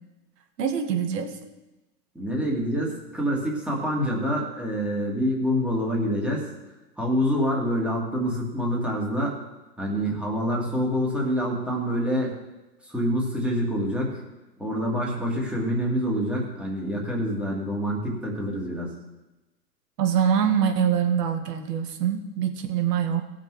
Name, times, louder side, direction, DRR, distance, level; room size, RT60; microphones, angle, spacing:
voice 1, 0.6-1.4 20.0-23.2, right 8 dB, 70° right, 5 dB, 2.0 m, -24 dB
voice 2, 2.1-6.5 7.0-9.4 9.8-12.4 12.8-14.2 14.6-18.9, equal, ahead, -3 dB, 2.4 m, -26 dB
17.0 x 6.6 x 4.9 m, 1.1 s
hypercardioid pair, 140°, 50 cm